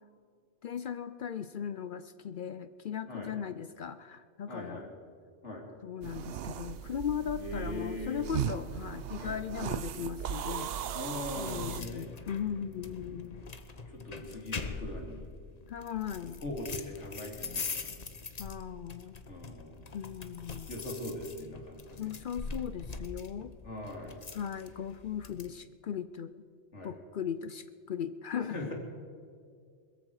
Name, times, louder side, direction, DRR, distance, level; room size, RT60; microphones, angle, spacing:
voice 1, 0.6-4.9 5.8-10.7 11.4-13.4 15.7-16.4 18.4-19.2 19.9-20.7 22.0-23.5 24.3-26.4 26.8-28.7, left 8 dB, 55° left, 13 dB, 0.6 m, -38 dB
voice 2, 4.5-4.9 5.4-5.7 7.4-8.2 9.2-9.4 10.9-12.1 13.9-15.3 16.4-17.9 19.3-19.8 20.7-22.1 23.6-24.2 26.7-26.9 28.5-28.7, left 1 dB, 70° left, 0 dB, 3.2 m, -41 dB
sound 1, 6.0-11.8, right 9 dB, 65° right, 0.8 m, -37 dB
sound 2, 11.5-25.5, left 4 dB, 35° left, 1.0 m, -43 dB
21.5 x 14.0 x 4.8 m, 2.2 s
omnidirectional pair, 1.2 m